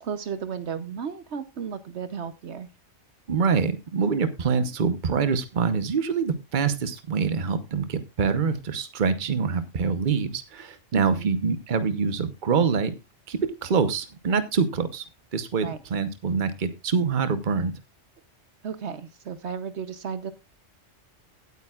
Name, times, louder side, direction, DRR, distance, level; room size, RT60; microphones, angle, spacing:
voice 1, 0.0-2.7 10.9-11.3 15.6-15.8 18.6-20.3, right 7 dB, 65° right, 12 dB, 1.1 m, -34 dB
voice 2, 3.3-12.9 13.3-15.0 15.3-17.7, right 5 dB, 45° right, 12 dB, 1.1 m, -25 dB
17.0 x 8.8 x 2.4 m, 0.23 s
omnidirectional pair, 1.2 m